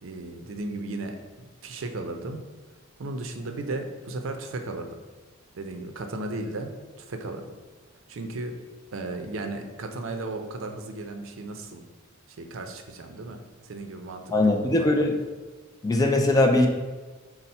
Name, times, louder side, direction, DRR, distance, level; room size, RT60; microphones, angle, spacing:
voice 1, 0.0-2.4 3.0-4.9 5.5-6.7 7.0-7.5 8.1-8.6 8.9-11.8 12.4-15.0, right 2 dB, 65° right, 5 dB, 0.5 m, -35 dB
voice 2, 14.3-15.1 15.8-16.7, left 2 dB, 15° left, 2 dB, 0.3 m, -20 dB
5.3 x 2.0 x 4.1 m, 1.3 s
head